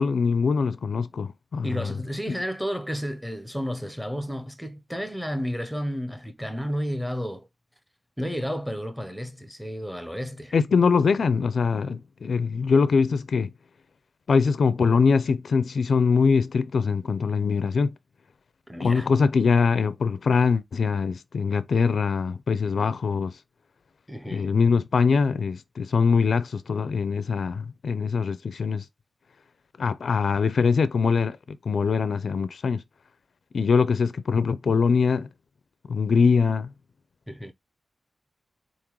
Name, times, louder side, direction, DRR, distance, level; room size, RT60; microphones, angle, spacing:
voice 1, 0.0-2.0 2.3-2.4 10.5-13.5 14.3-17.9 18.8-23.3 24.3-28.8 29.8-32.8 33.5-35.3 35.9-36.7, left 5 dB, 75° left, 0.4 m, -23 dB
voice 2, 1.6-7.5 8.2-10.5 18.7-19.1 24.1-24.5 37.3-37.5, equal, 5° right, 0.7 m, -32 dB
4.1 x 3.6 x 3.0 m
wide cardioid pair, 125°, 0 cm